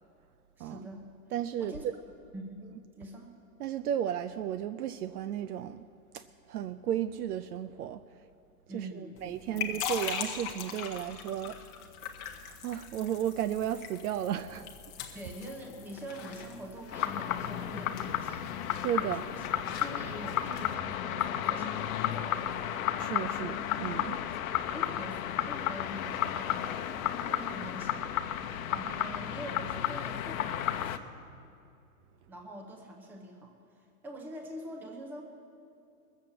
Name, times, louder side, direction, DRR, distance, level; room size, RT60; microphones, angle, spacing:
voice 1, 0.6-1.0 1.6-1.8 2.3-2.7 3.0-3.3 8.7-9.7 15.1-18.5 19.0-23.0 24.4-28.2 28.7-31.1 32.3-35.2, right 1 dB, 5° right, 1 dB, 0.6 m, -45 dB
voice 2, 1.3-1.9 3.6-5.8 6.1-8.0 8.7-11.6 12.4-14.7 15.1-15.2 18.8-19.2 23.0-24.2, right 10 dB, 75° right, 11 dB, 0.6 m, -34 dB
sound 1, 9.2-20.7, left 8 dB, 25° left, 0.8 m, -42 dB
sound 2, 16.9-31.0, left 10 dB, 60° left, 0.8 m, -33 dB
20.0 x 7.3 x 7.7 m, 2.6 s
supercardioid pair, 160°, 46 cm